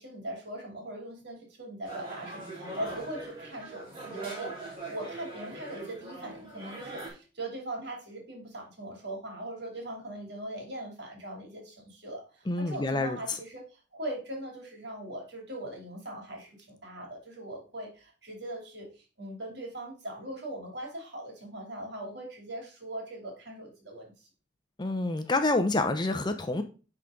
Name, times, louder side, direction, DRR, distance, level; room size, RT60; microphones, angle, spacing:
voice 1, 0.0-24.3, right 1 dB, 60° right, 1 dB, 2.6 m, -40 dB
sound 1, 1.8-7.1, right 3 dB, 25° right, 3.5 m, -41 dB
voice 2, 12.5-13.2 24.8-26.6, left 2 dB, 25° left, 8 dB, 0.6 m, -27 dB
10.0 x 3.9 x 3.6 m, 0.34 s
head